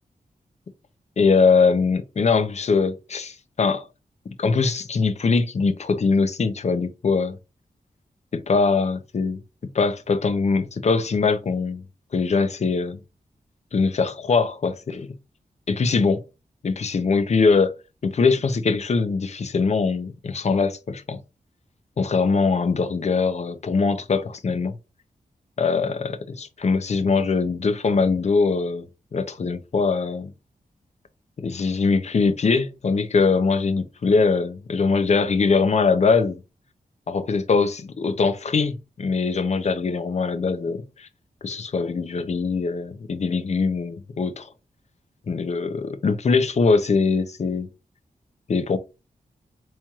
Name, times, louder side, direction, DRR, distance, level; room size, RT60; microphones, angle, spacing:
voice 1, 1.2-3.9 4.4-7.4 8.3-9.4 9.7-11.8 12.1-13.0 13.7-15.1 15.7-16.2 16.6-17.8 18.0-21.2 22.0-24.7 25.6-28.8 29.1-30.3 31.4-36.4 37.1-41.1 41.4-44.5 45.3-47.7 48.5-48.8, left 4 dB, 50° left, 0.5 m, -22 dB
4.3 x 3.0 x 2.3 m
wide cardioid pair, 95°, 15 cm